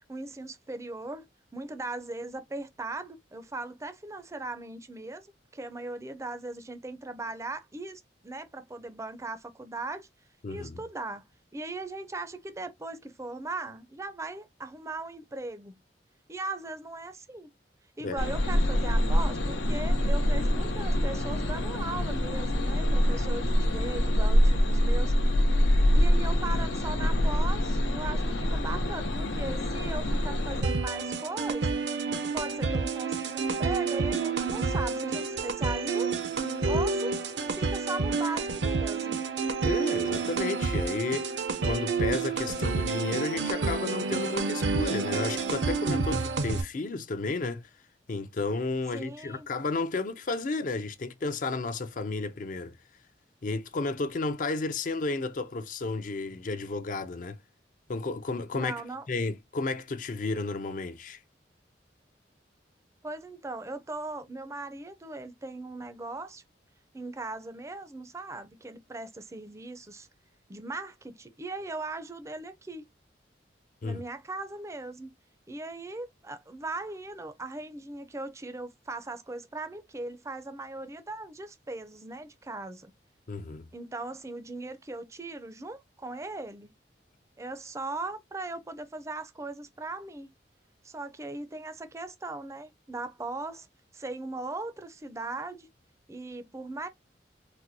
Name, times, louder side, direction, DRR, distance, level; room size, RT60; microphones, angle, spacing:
voice 1, 0.1-1.3 1.5-5.3 5.5-10.1 10.5-11.3 11.5-15.8 16.3-17.5 18.0-25.1 25.9-31.8 32.3-36.1 36.7-37.2 37.5-39.2 48.9-49.5 58.5-59.0 63.0-66.4 66.9-70.1 70.5-72.8 73.8-75.1 75.5-82.9 83.7-86.7 87.4-90.3 90.8-93.7 93.9-95.7 96.1-96.9, right 2 dB, 15° right, 0.4 m, -38 dB
voice 2, 10.4-10.8 18.0-18.2 39.6-41.3 41.6-47.7 48.1-52.8 53.4-57.4 57.9-58.7 59.1-61.2 73.8-74.0 83.3-83.7, left 3 dB, 45° left, 0.4 m, -32 dB
sound 1, 18.2-30.6, equal, 90° left, 0.7 m, -25 dB
sound 2, 30.6-46.6, right 4 dB, 80° right, 0.6 m, -29 dB
4.2 x 2.2 x 2.6 m
head